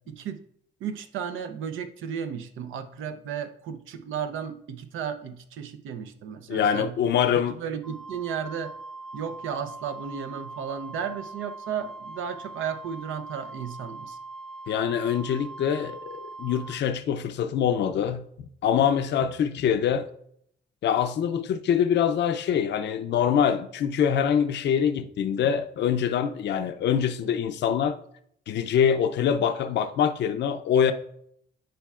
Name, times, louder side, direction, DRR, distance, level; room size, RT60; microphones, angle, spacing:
voice 1, 0.1-0.4 0.8-7.0 7.6-8.7 9.1-14.2, right 7 dB, 80° right, 0.7 m, -34 dB
voice 2, 6.5-7.6 14.7-18.2 18.6-20.1 20.8-28.0 28.5-30.9, left 8 dB, 60° left, 0.5 m, -24 dB
Wind instrument woodwind instrument, 7.8-16.8, right 3 dB, ahead, 0.4 m, -41 dB
10.0 x 4.4 x 2.4 m
cardioid pair, 90°, 20 cm